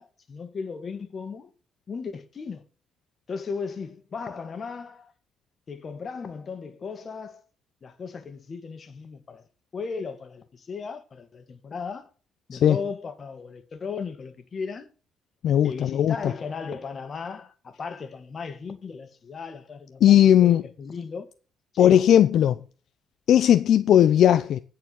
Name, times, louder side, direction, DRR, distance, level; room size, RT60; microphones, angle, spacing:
voice 1, 0.0-1.5 1.9-2.6 3.3-5.1 5.7-7.4 7.8-9.4 9.7-12.0 12.5-14.9 15.6-21.3 21.7-22.0, left 5 dB, 45° left, 1.6 m, -36 dB
voice 2, 15.4-16.1 20.0-20.6 21.8-22.6 23.3-24.6, left 10 dB, 70° left, 0.4 m, -17 dB
9.9 x 4.6 x 7.5 m
cardioid pair, 90°, 0 cm